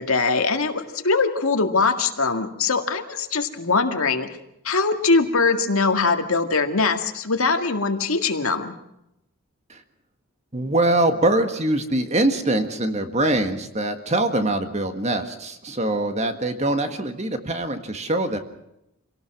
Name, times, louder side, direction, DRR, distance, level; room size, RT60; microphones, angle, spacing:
voice 1, 0.0-4.3 4.7-8.7, left 4 dB, 75° left, 6 dB, 2.0 m, -22 dB
voice 2, 10.5-18.4, right 1 dB, 30° right, 7 dB, 1.7 m, -23 dB
27.0 x 18.0 x 6.0 m, 0.83 s
head